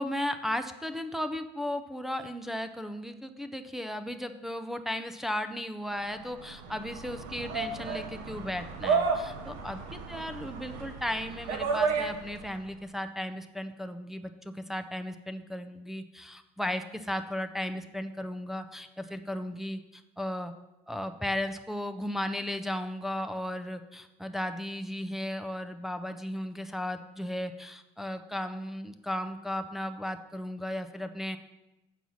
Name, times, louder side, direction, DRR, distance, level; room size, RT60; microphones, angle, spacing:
voice 1, 0.0-9.1 9.5-20.5 20.9-31.4, left 1 dB, ahead, 6 dB, 0.4 m, -35 dB
sound 1, 6.2-12.6, right 5 dB, 90° right, 1.2 m, -32 dB
7.2 x 5.4 x 6.1 m, 0.95 s
cardioid pair, 145°, 17 cm